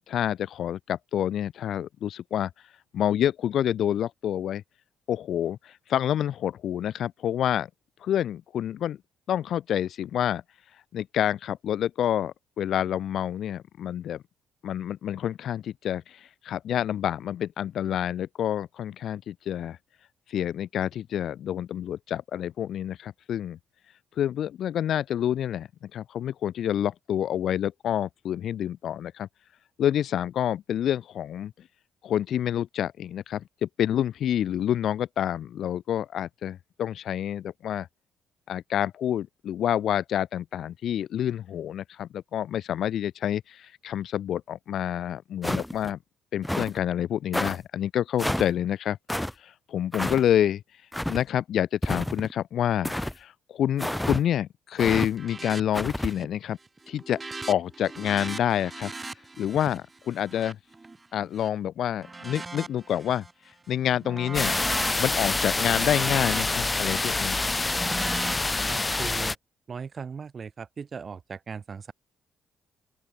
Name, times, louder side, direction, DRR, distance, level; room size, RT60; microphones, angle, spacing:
voice 1, 0.1-2.5 2.9-4.6 5.1-7.7 8.0-9.0 9.3-10.4 10.9-14.2 14.6-16.2 16.4-19.8 20.3-23.6 24.2-29.3 29.8-31.5 32.0-37.9 38.5-46.0 46.3-49.0 49.4-50.6 51.1-56.6 56.9-57.2 57.5-58.9 59.4-60.6 61.1-63.2 63.7-64.5 65.0-67.4, left 10 dB, 60° left, 1.2 m, -28 dB
sound 1, 45.4-45.9 46.4-46.8 47.3-47.6 48.2-48.5 49.1-49.3 49.9-50.2 50.9-51.2 51.8-52.3 52.8-53.2 53.8-54.2 54.8-55.1 55.7-56.1, left 1 dB, 5° left, 1.5 m, -29 dB
sound 2, 55.1-55.6 55.9-56.4 56.7-61.5 62.0-63.3 63.7-68.8, right 3 dB, 25° right, 6.6 m, -39 dB
sound 3, 64.3-69.4, left 3 dB, 25° left, 0.7 m, -26 dB
voice 2, 68.7-69.4 69.7-71.9, right 6 dB, 45° right, 4.1 m, -38 dB
open air
figure-of-eight pair, 45°, 0 cm